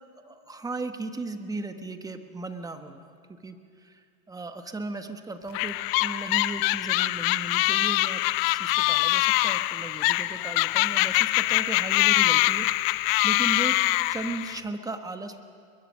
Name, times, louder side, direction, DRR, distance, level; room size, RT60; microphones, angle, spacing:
voice 1, 0.2-4.0 4.3-13.8 14.0-15.4, right 3 dB, 10° right, 7 dB, 1.2 m, -36 dB
sound 1, 5.5-14.6, left 19 dB, 45° left, 0.5 m, -24 dB
22.0 x 22.0 x 6.3 m, 2.3 s
hypercardioid pair, 120°, 44 cm